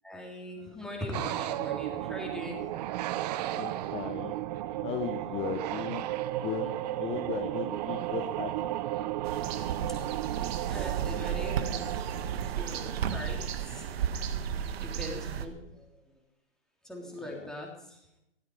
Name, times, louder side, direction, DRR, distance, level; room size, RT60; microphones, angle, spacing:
voice 1, 0.0-2.6 10.7-12.1 12.4-13.9 14.8-15.9 16.8-18.0, left 1 dB, ahead, -1 dB, 3.3 m, -41 dB
sound 1, 1.1-14.1, right 14 dB, 35° right, 0.7 m, -34 dB
voice 2, 3.5-4.4 4.7-6.0 6.4-8.7 17.2-17.5, left 9 dB, 15° left, 7 dB, 0.7 m, -37 dB
sound 2, 9.2-15.5, right 8 dB, 60° right, 1.7 m, -33 dB
15.5 x 13.0 x 5.4 m, 0.85 s
hypercardioid pair, 145°, 34 cm